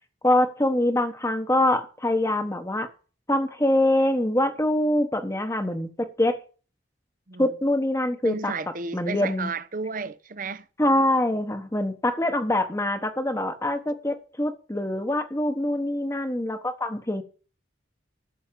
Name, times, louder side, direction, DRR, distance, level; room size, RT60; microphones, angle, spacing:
voice 1, 0.2-2.9 3.3-6.4 7.4-8.5 8.9-9.5 10.8-17.2, left 1 dB, 15° left, 1.1 m, -24 dB
voice 2, 8.2-10.7, right 4 dB, 45° right, 0.8 m, -33 dB
13.5 x 6.4 x 7.5 m
head